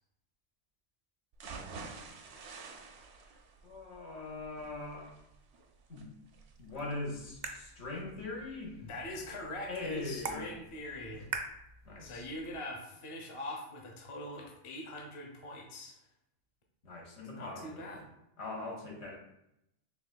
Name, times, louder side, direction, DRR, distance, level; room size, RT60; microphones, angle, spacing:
sound 1, 1.3-9.3 9.7-9.8 10.2-10.3, right 4 dB, 80° right, 0.9 m, -50 dB
voice 1, 3.6-5.1 5.9-6.1 6.6-8.8 9.7-10.5 11.8-12.2 16.8-17.9 18.4-19.1, left 2 dB, 75° left, -1 dB, 1.3 m, -41 dB
sound 2, 6.5-12.5, right 4 dB, 55° right, 0.5 m, -46 dB
voice 2, 8.8-11.3 12.0-16.0 17.3-18.1, left 1 dB, 35° left, 0 dB, 0.6 m, -43 dB
5.0 x 3.5 x 2.2 m, 0.81 s
omnidirectional pair, 1.1 m